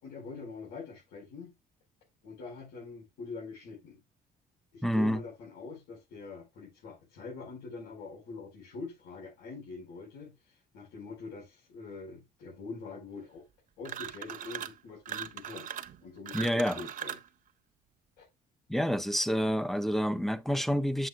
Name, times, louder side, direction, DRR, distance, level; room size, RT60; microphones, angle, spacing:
voice 1, 0.0-1.5 2.2-4.0 4.7-13.4 13.8-15.7 16.0-17.2 18.2-18.3, left 4 dB, 80° left, 4.5 m, -44 dB
voice 2, 4.8-5.2 16.3-16.9 18.7-21.1, equal, ahead, 0.7 m, -28 dB
sound 1, 13.8-14.8 15.1-17.3, right 9 dB, 55° right, 1.0 m, -40 dB
9.0 x 7.8 x 2.3 m
cardioid pair, 110°, 17 cm